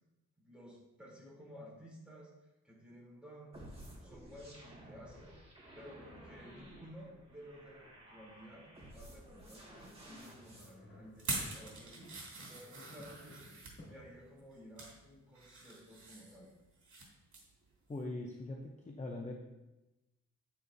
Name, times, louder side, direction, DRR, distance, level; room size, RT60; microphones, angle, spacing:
voice 1, 0.4-3.6 4.0-5.3 5.7-16.5, equal, 5° right, -6 dB, 3.3 m, -54 dB
sound 1, 3.5-10.7, right 1 dB, 20° right, 2.0 m, -54 dB
sound 2, 10.2-14.2, left 1 dB, 50° left, 2.9 m, -58 dB
sound 3, 11.2-13.8 14.4-15.0 15.3-17.1 17.3-17.5 17.9-18.0, right 3 dB, 75° right, 2.7 m, -44 dB
voice 2, 17.9-19.3, left 2 dB, 25° left, 1 dB, 0.7 m, -41 dB
9.2 x 9.0 x 2.7 m, 1.0 s
wide cardioid pair, 150°, 30 cm